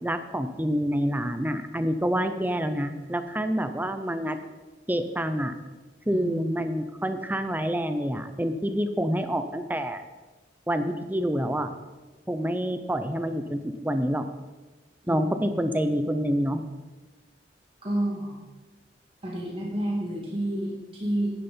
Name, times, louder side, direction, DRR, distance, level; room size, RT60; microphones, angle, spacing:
voice 1, 0.0-4.4 4.9-5.5 6.1-10.0 10.7-11.7 12.3-14.3 15.1-16.6, equal, 10° right, 9 dB, 0.6 m, -27 dB
voice 2, 6.1-6.5 15.0-15.7 17.8-18.4 19.2-21.3, right 1 dB, 30° right, -4 dB, 2.5 m, -30 dB
10.5 x 10.0 x 4.4 m, 1.2 s
head